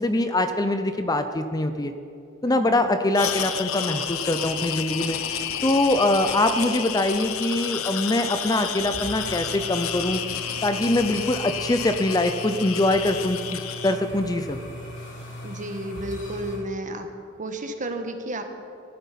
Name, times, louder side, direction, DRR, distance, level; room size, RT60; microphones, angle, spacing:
voice 1, 0.0-1.9 2.4-5.2 5.6-10.2 10.6-14.6, left 1 dB, 20° left, 8 dB, 0.6 m, -23 dB
voice 2, 2.5-2.8 15.4-17.1 17.4-18.4, right 1 dB, 40° right, 6 dB, 1.3 m, -32 dB
sound 1, 3.1-14.0, left 9 dB, 75° left, 0.9 m, -31 dB
sound 2, 8.8-16.6, equal, 60° left, 4.2 m, -39 dB
15.0 x 12.0 x 5.8 m, 2.7 s
head